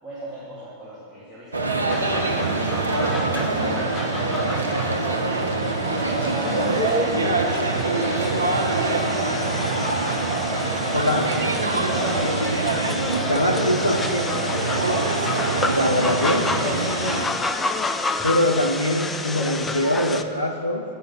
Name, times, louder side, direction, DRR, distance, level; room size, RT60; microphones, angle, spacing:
voice 1, 0.0-5.0 5.8-7.4 7.8-10.2 10.6-12.5 13.3-15.0 17.0-17.4, equal, ahead, -11 dB, 2.0 m, -35 dB
sound 1, 1.5-17.3, right 3 dB, 75° right, 0.6 m, -24 dB
sound 2, 1.9-20.2, left 3 dB, 15° left, 0.4 m, -30 dB
voice 2, 10.9-11.3 12.2-12.6 13.3-14.2 15.6-16.5 18.2-20.8, left 1 dB, 85° left, 2 dB, 0.4 m, -23 dB
8.9 x 5.5 x 6.0 m, 2.4 s
figure-of-eight pair, 90°, 0 cm